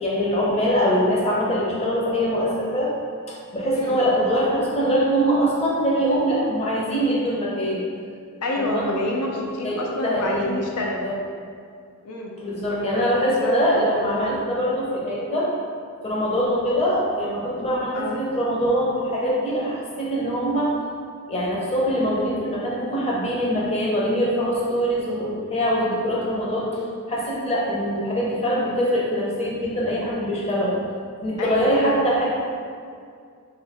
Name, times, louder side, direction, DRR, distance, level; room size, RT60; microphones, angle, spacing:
voice 1, 0.0-2.9 3.5-7.8 8.5-8.9 9.2-9.7 10.0-10.5 11.0-11.1 12.4-15.5 16.0-20.7 21.3-26.7 27.1-30.7 31.2-32.3, equal, 30° left, -5 dB, 0.7 m, -23 dB
voice 2, 8.4-11.1 12.0-12.4 12.6-14.5 17.9-18.2 31.4-32.1, left 1 dB, 85° left, -1 dB, 0.5 m, -28 dB
3.1 x 2.8 x 4.0 m, 2.2 s
head